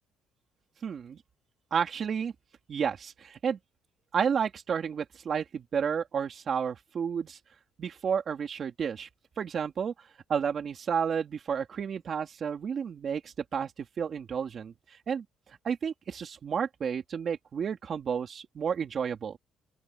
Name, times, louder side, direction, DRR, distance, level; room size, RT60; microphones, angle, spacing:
voice 1, 0.8-1.2 1.7-2.3 2.7-3.6 4.1-7.4 7.8-9.1 9.4-9.9 10.3-14.7 15.1-15.2 15.6-19.4, right 7 dB, 40° right, 3.4 m, -31 dB
open air
cardioid pair, 140°, 0 cm